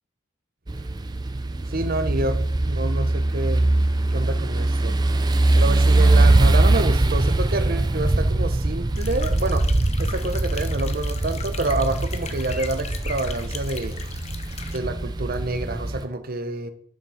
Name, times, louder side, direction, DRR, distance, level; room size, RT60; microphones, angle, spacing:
sound 1, 0.7-16.0, right 2 dB, 20° right, 0.5 m, -22 dB
voice 1, 1.7-3.6 4.1-5.0 5.5-9.7 10.0-14.0 14.7-16.7, right 2 dB, 50° right, 0.8 m, -28 dB
sound 2, 9.0-14.8, left 6 dB, 35° left, 0.7 m, -39 dB
7.2 x 6.1 x 5.6 m
head